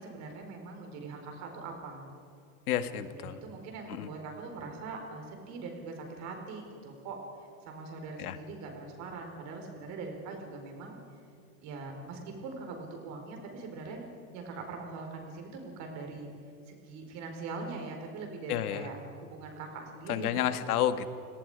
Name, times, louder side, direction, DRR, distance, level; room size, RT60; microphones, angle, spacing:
voice 1, 0.0-2.0 3.0-7.2 7.6-11.0 11.6-14.1 14.3-16.3 16.7-20.4, right 3 dB, 40° right, 3 dB, 4.7 m, -42 dB
voice 2, 2.7-3.4 3.9-4.1 8.2-8.4 18.5-18.9 20.1-21.1, left 10 dB, 85° left, 11 dB, 1.6 m, -30 dB
30.0 x 18.5 x 5.1 m, 2.6 s
supercardioid pair, 155°, 43 cm